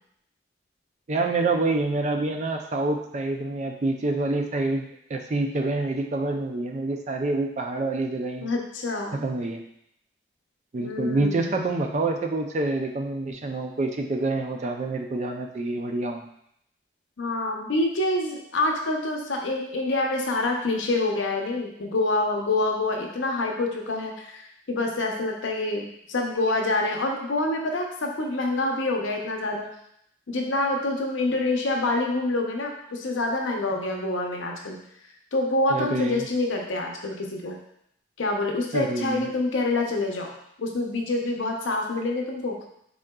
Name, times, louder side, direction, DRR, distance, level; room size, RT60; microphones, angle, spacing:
voice 1, 1.1-8.5 9.1-9.6 10.7-16.3 35.7-36.3 38.7-39.3, right 2 dB, 35° right, 4 dB, 0.3 m, -27 dB
voice 2, 8.4-9.2 10.8-11.6 17.2-24.4 24.7-29.7 30.3-34.8 35.3-37.6 38.2-40.3 40.6-42.6, left 2 dB, 80° left, 1 dB, 0.6 m, -26 dB
3.7 x 3.7 x 2.2 m, 0.73 s
head